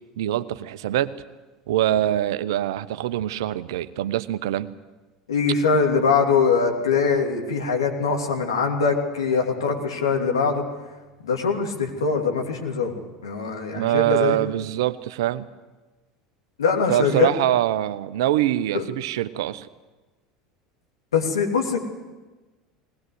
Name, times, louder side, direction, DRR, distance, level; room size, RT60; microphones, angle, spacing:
voice 1, 0.2-1.1 1.7-4.7 13.7-15.5 16.9-19.7, right 13 dB, 65° right, 14 dB, 0.8 m, -24 dB
voice 2, 5.3-10.6 11.2-12.9 13.2-14.4 16.6-17.3 18.7-18.8 21.1-21.8, left 5 dB, 75° left, 1 dB, 2.8 m, -22 dB
20.0 x 19.0 x 8.0 m, 1.2 s
figure-of-eight pair, 75°, 3 cm